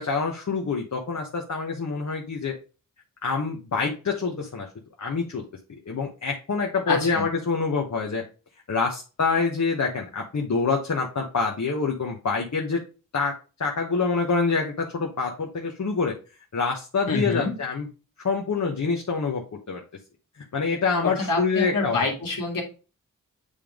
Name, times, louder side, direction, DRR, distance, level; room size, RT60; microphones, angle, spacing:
voice 1, 0.0-2.6 3.2-4.7 5.0-5.4 5.9-8.2 8.7-12.8 13.1-13.3 13.6-16.1 16.5-17.9 18.2-19.8 20.5-22.0, left 4 dB, 55° left, 0 dB, 1.2 m, -26 dB
voice 2, 6.9-7.3 17.1-17.5 21.0-22.6, left 3 dB, 75° left, 0 dB, 2.2 m, -26 dB
8.4 x 3.5 x 3.6 m, 0.33 s
cardioid pair, 65°, 33 cm